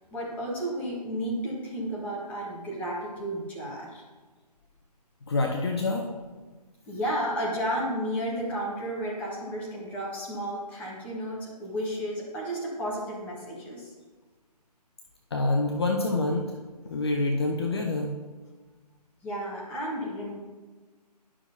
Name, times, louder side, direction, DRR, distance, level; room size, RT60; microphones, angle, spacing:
voice 1, 0.1-4.0 6.8-13.9 19.2-20.3, equal, 5° left, -5 dB, 1.2 m, -32 dB
voice 2, 5.3-6.1 15.3-16.5 16.9-18.1, left 2 dB, 40° left, 2 dB, 0.7 m, -26 dB
11.5 x 6.1 x 2.8 m, 1.3 s
figure-of-eight pair, 150°, 21 cm